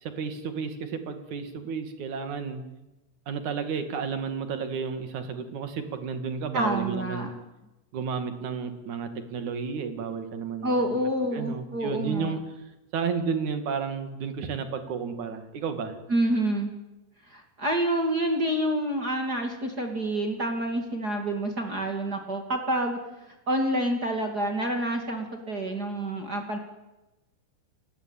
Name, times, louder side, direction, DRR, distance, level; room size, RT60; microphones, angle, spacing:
voice 1, 0.0-2.6 3.3-7.3 7.9-11.0 11.3-12.4 12.9-15.9, right 5 dB, 50° right, 8 dB, 3.0 m, -32 dB
voice 2, 6.5-7.3 10.6-12.4 16.1-16.7 17.3-23.0 23.5-26.6, right 1 dB, 30° right, 4 dB, 2.1 m, -28 dB
29.5 x 19.0 x 9.1 m, 1.0 s
omnidirectional pair, 5.4 m